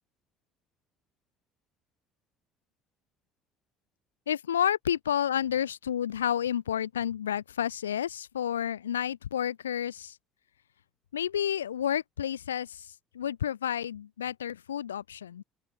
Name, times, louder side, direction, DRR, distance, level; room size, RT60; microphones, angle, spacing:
voice 1, 4.3-10.2 11.1-15.4, left 9 dB, 85° left, 2.2 m, -30 dB
open air
hypercardioid pair, 60°, 0 cm